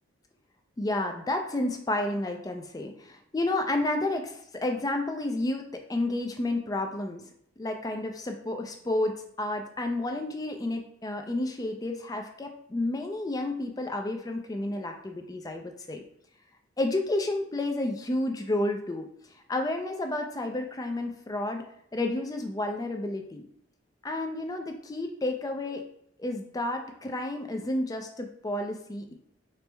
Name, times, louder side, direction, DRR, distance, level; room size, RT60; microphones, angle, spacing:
voice 1, 0.8-7.2 7.6-16.0 16.8-19.1 19.5-21.6 21.9-23.5 24.0-25.8 26.2-29.1, left 2 dB, 20° left, 4 dB, 0.3 m, -31 dB
4.4 x 2.0 x 3.3 m, 0.69 s
head